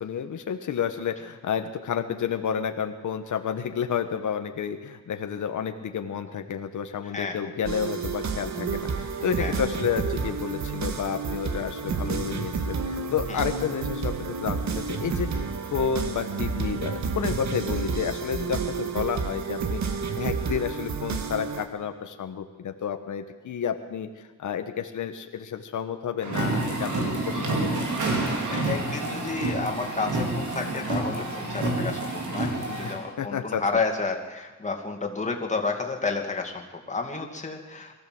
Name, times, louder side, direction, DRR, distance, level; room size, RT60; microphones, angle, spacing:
voice 1, 0.0-19.8 20.2-27.9 32.8-33.6, left 8 dB, 90° left, 7 dB, 1.3 m, -30 dB
voice 2, 7.1-7.5 9.4-9.5 13.3-13.4 28.5-37.9, left 4 dB, 25° left, 2 dB, 2.5 m, -31 dB
sound 1, 7.6-21.7, right 5 dB, 65° right, 1.8 m, -30 dB
sound 2, 26.2-32.9, right 2 dB, 85° right, 4.4 m, -28 dB
23.0 x 15.0 x 7.9 m, 1.3 s
wide cardioid pair, 130°, 30 cm